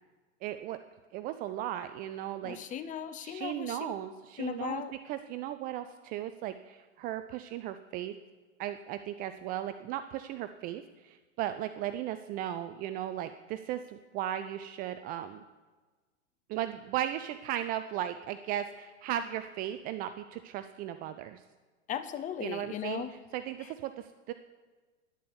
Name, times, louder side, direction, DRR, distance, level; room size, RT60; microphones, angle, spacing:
voice 1, 0.4-0.8 1.1-2.8 3.2-8.1 8.6-15.4 16.5-21.4 22.4-24.3, right 12 dB, 25° right, 10 dB, 0.4 m, -36 dB
voice 2, 2.4-3.9 4.4-4.9 21.9-23.1, left 9 dB, 20° left, 12 dB, 0.7 m, -37 dB
11.0 x 9.7 x 7.2 m, 1.3 s
hypercardioid pair, 120°, 38 cm